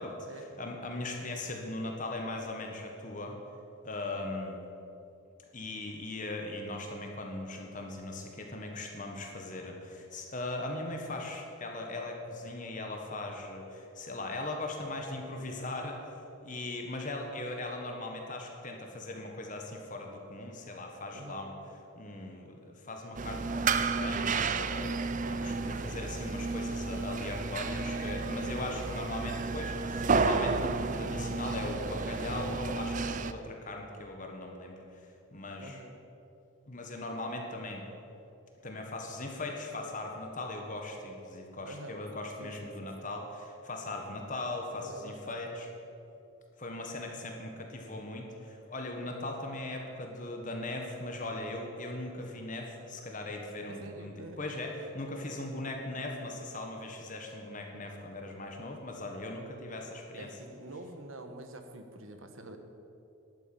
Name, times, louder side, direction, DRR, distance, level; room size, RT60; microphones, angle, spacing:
voice 1, 0.0-3.4 3.8-4.6 5.5-16.0 16.4-21.5 21.9-35.0 35.3-35.8 36.7-37.8 38.6-45.7 46.6-60.3, left 2 dB, 40° left, 2 dB, 1.5 m, -39 dB
voice 2, 21.1-21.5 25.2-25.6 35.6-35.9 41.6-42.0 42.4-42.5 44.8-45.2 45.4-45.6 53.7-54.4 60.2-62.6, right 1 dB, 70° right, 6 dB, 1.4 m, -46 dB
sound 1, 23.2-33.3, right 4 dB, 40° right, 0.5 m, -32 dB
12.0 x 9.3 x 9.0 m, 2.9 s
head